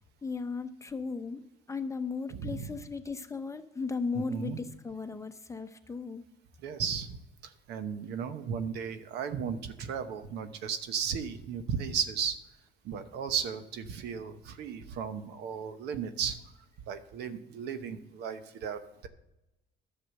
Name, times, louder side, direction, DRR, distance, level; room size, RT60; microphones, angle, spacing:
voice 1, 0.2-1.4 1.7-6.2, left 4 dB, 15° left, 9 dB, 0.8 m, -36 dB
voice 2, 2.3-2.8 4.1-4.6 6.6-7.2 7.4-12.4 12.8-16.4 16.9-19.1, right 7 dB, 80° right, 10 dB, 1.0 m, -35 dB
11.0 x 6.5 x 6.4 m, 0.91 s
cardioid pair, 110°, 17 cm